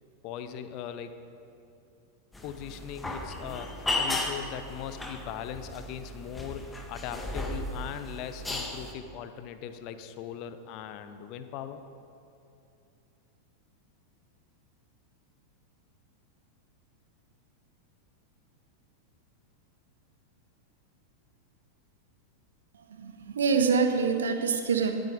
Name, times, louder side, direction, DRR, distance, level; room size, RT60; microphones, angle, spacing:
voice 1, 0.2-1.2 2.4-11.8, left 9 dB, 40° left, 10 dB, 0.9 m, -39 dB
sound 1, 2.3-8.9, left 2 dB, 10° left, 1.6 m, -35 dB
voice 2, 22.7-24.9, right 5 dB, 65° right, 6 dB, 1.3 m, -26 dB
19.0 x 9.5 x 5.1 m, 2.6 s
figure-of-eight pair, 90°, 0 cm